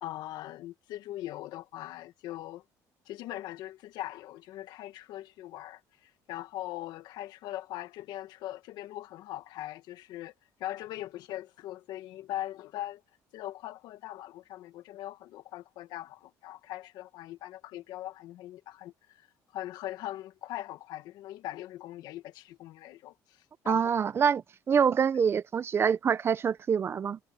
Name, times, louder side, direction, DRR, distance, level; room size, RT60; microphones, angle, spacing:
voice 1, 0.0-2.6 3.1-10.3 10.6-13.0 13.3-19.3 19.5-23.9, left 14 dB, 75° left, 1.8 m, -41 dB
voice 2, 23.7-27.2, right 7 dB, 35° right, 0.7 m, -26 dB
cardioid pair, 120°, 7 cm